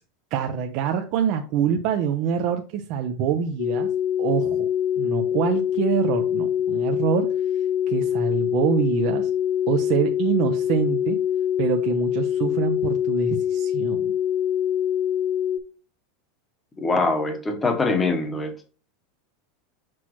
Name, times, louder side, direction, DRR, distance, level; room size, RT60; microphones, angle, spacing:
voice 1, 0.3-3.9 4.2-4.7 5.0-7.3 7.9-9.3 9.7-11.2 11.6-14.1, right 8 dB, 40° right, 5 dB, 0.6 m, -25 dB
sound 1, 3.6-15.6, left 10 dB, 45° left, 0.5 m, -24 dB
voice 2, 16.8-18.7, left 3 dB, 10° left, 5 dB, 1.0 m, -23 dB
6.1 x 5.9 x 3.0 m, 0.37 s
supercardioid pair, 175°, 0 cm